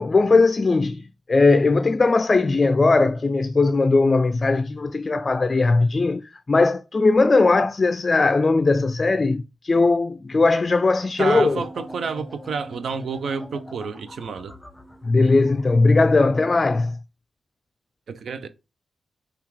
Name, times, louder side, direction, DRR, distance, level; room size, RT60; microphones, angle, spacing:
voice 1, 0.0-11.6 15.0-17.0, left 3 dB, 40° left, 0.3 m, -19 dB
voice 2, 11.2-14.5 18.1-18.5, right 5 dB, 70° right, 0.5 m, -29 dB
sound 1, 11.3-16.6, equal, 15° left, 0.8 m, -41 dB
5.6 x 2.3 x 3.1 m
supercardioid pair, 50°, 0 cm